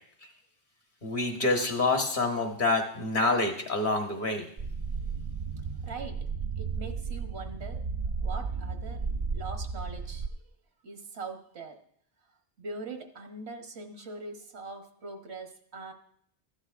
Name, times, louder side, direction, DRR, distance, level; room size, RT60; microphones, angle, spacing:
voice 1, 1.0-4.5, left 2 dB, 50° left, 2 dB, 1.5 m, -27 dB
sound 1, 4.6-10.3, right 5 dB, 45° right, 0.4 m, -34 dB
voice 2, 5.8-6.3 6.6-7.8 8.2-9.1 9.3-10.3 10.8-11.7 12.6-15.9, right 3 dB, 80° right, 5 dB, 1.4 m, -42 dB
14.0 x 11.5 x 2.5 m, 0.65 s
omnidirectional pair, 1.1 m